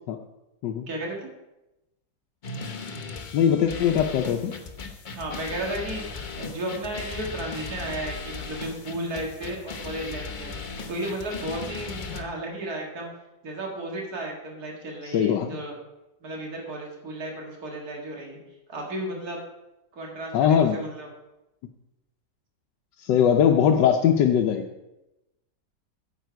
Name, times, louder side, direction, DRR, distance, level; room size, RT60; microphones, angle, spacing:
voice 1, 0.9-1.3 5.1-10.5 10.9-13.1 13.4-15.8 16.2-18.4 18.7-19.4 19.9-21.1, right 1 dB, 60° right, -1 dB, 2.4 m, -34 dB
sound 1, 2.4-12.2, left 4 dB, 40° left, 0.7 m, -37 dB
voice 2, 3.3-4.6 15.1-15.6 20.3-20.8 23.0-24.6, left 8 dB, 85° left, 3 dB, 1.3 m, -21 dB
9.2 x 8.3 x 4.6 m, 0.96 s
omnidirectional pair, 1.9 m